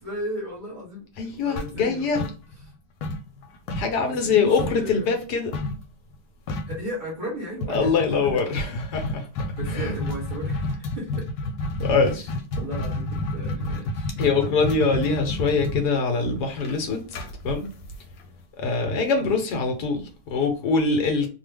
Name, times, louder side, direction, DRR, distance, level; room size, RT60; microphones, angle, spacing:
voice 1, 0.0-2.3 4.0-5.1 6.7-8.6 9.6-11.3 12.6-14.5 19.2-19.4, equal, 35° right, 0.9 m, -36 dB
voice 2, 1.2-2.2 3.7-5.5 7.7-9.3 9.7-9.9 11.8-12.3 14.2-17.2 17.4-17.7 18.6-21.3, left 4 dB, 70° left, 1.3 m, -23 dB
sound 1, 1.6-2.7 3.0-4.9 5.5-5.8 6.1-6.2 6.5-6.8 7.6-18.4, left 2 dB, 90° left, 1.3 m, -30 dB
3.2 x 2.1 x 3.3 m
omnidirectional pair, 1.8 m